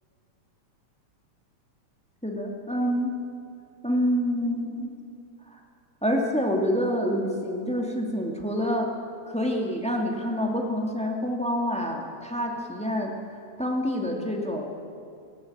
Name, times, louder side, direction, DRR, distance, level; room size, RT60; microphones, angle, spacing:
voice 1, 2.2-3.1 3.8-5.0 5.5-5.6 6.0-8.9 9.3-13.1 13.6-14.7, equal, ahead, 0 dB, 1.9 m, -27 dB
18.0 x 17.0 x 9.0 m, 2.3 s
omnidirectional pair, 3.4 m